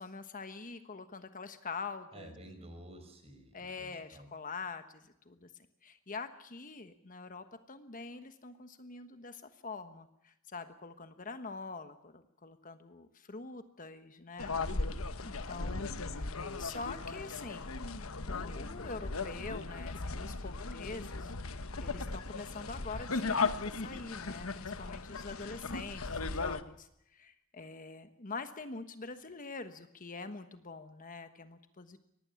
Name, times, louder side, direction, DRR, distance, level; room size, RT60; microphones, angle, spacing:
voice 1, 0.0-2.3 3.5-5.5 5.8-14.5 15.2-17.7 18.2-32.0, left 4 dB, 40° left, 9 dB, 1.3 m, -45 dB
voice 2, 2.1-4.3, right 1 dB, 30° right, 7 dB, 5.1 m, -51 dB
sound 1, 14.4-26.6, left 3 dB, 75° left, 1.2 m, -37 dB
24.0 x 19.0 x 7.1 m, 0.78 s
head